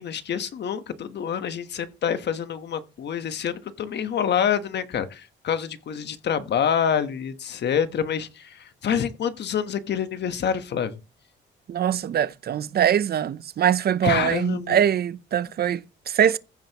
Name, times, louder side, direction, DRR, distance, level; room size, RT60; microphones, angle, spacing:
voice 1, 0.0-11.0 14.0-14.8, left 8 dB, 60° left, 1.2 m, -27 dB
voice 2, 11.7-16.4, right 9 dB, 50° right, 0.7 m, -23 dB
15.0 x 5.6 x 3.0 m
cardioid pair, 90°, 20 cm